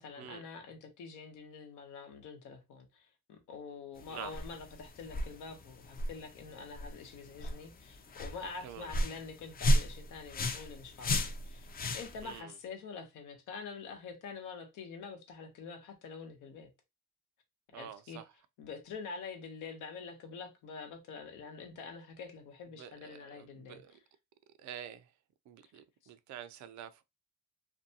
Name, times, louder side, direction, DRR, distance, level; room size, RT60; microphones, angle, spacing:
voice 1, 0.0-16.7 17.7-18.2 18.6-23.8 25.6-25.7, left 5 dB, 90° left, 0.8 m, -46 dB
sound 1, 4.0-12.4, equal, 30° left, 0.4 m, -35 dB
voice 2, 8.6-8.9 12.2-12.6 17.7-18.3 22.8-24.0 24.6-25.1 25.5-27.0, right 9 dB, 70° right, 0.5 m, -47 dB
2.6 x 2.2 x 2.7 m
cardioid pair, 90°, 30 cm